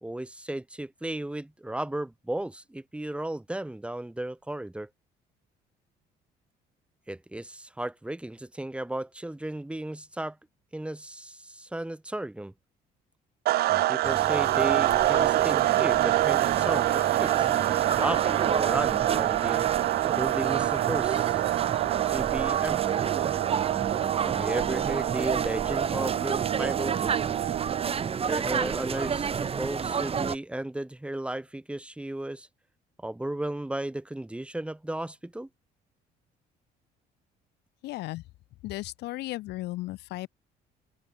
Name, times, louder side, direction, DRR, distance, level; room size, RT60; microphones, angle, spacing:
voice 1, 0.0-4.9 7.1-10.4 10.7-12.5 13.7-17.5 18.0-19.7 20.2-21.4 22.1-22.8 24.2-27.1 28.3-32.5 33.0-35.5, right 1 dB, 5° right, 1.5 m, -34 dB
sound 1, 13.5-28.2, right 16 dB, 65° right, 0.5 m, -26 dB
sound 2, 14.0-30.4, right 6 dB, 35° right, 2.2 m, -31 dB
voice 2, 37.8-38.2 38.6-40.3, left 18 dB, 80° left, 0.9 m, -35 dB
cardioid pair, 110°, 17 cm